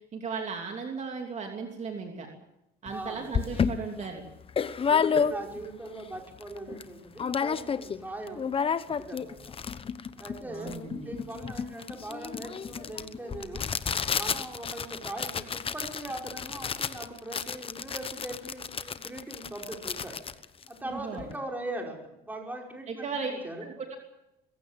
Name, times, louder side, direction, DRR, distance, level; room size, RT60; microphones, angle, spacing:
voice 1, 0.1-2.3 2.8-4.2 10.4-11.2 20.8-21.3 22.9-23.3 23.6-24.0, right 5 dB, 45° right, 3 dB, 3.0 m, -36 dB
sound 1, 2.9-3.0 3.3-5.7 6.1-6.2 6.4-6.9 7.2-8.0 8.3-21.3, left 6 dB, 35° left, 1.0 m, -31 dB
voice 2, 2.9-3.7 4.7-8.5 9.0-9.6 10.2-13.7 14.1-20.2 20.7-23.7, right 1 dB, 10° right, 1 dB, 5.3 m, -40 dB
22.0 x 16.0 x 8.9 m, 0.90 s
cardioid pair, 110°, 17 cm